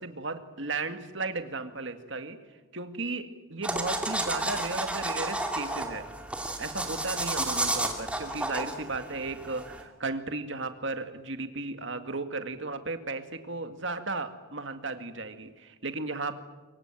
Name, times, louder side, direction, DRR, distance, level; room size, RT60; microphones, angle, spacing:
voice 1, 0.0-2.4 2.7-6.1 6.6-16.3, right 3 dB, 60° right, 8 dB, 2.0 m, -35 dB
sound 1, 3.6-9.8, right 1 dB, 5° right, 2.5 m, -32 dB
24.0 x 23.0 x 9.0 m, 1.2 s
head